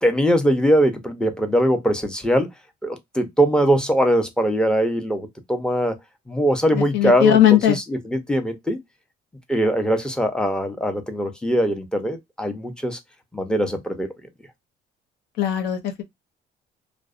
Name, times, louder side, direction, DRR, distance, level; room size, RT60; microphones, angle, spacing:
voice 1, 0.0-2.5 2.8-6.0 6.3-8.8 9.5-13.0 13.3-14.1, equal, 5° left, 0.6 m, -21 dB
voice 2, 6.7-7.8 15.4-16.0, left 12 dB, 80° left, 0.6 m, -18 dB
2.5 x 2.0 x 2.3 m
cardioid pair, 110°, 17 cm